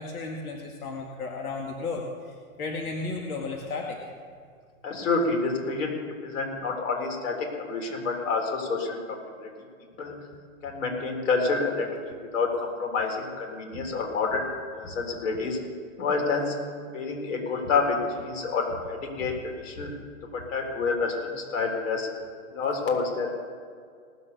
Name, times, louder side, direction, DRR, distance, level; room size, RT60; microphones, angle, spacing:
voice 1, 0.0-4.0 13.7-13.9 14.8-14.9 17.6-17.7 19.2-19.3 19.8-19.9, left 3 dB, 90° left, 0 dB, 2.1 m, -34 dB
voice 2, 4.8-9.5 10.0-10.2 10.6-14.5 14.7-15.6 16.0-16.5 16.9-19.3 19.6-19.9 20.3-22.1 22.5-23.3, left 4 dB, 60° left, 1 dB, 3.8 m, -28 dB
19.0 x 7.0 x 6.8 m, 2.1 s
hypercardioid pair, 160°, 43 cm